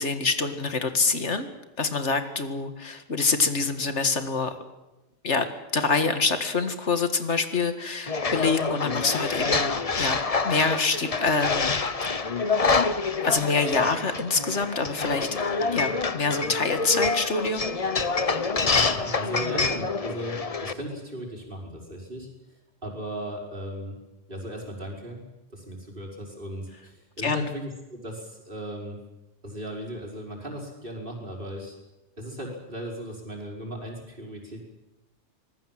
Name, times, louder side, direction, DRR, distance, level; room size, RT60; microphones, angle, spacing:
voice 1, 0.0-1.5 1.8-4.5 5.2-5.5 5.7-10.2 10.4-12.6 13.2-15.3 15.7-17.8 27.2-27.5, left 4 dB, 75° left, 8 dB, 2.1 m, -26 dB
sound 1, 8.1-20.7, left 4 dB, 35° left, 1.0 m, -27 dB
voice 2, 18.6-22.3 22.8-23.9 24.3-25.2 25.5-29.0 29.4-31.8 32.2-34.7, equal, 50° right, -1 dB, 5.6 m, -36 dB
25.5 x 20.0 x 7.6 m, 1.0 s
omnidirectional pair, 1.2 m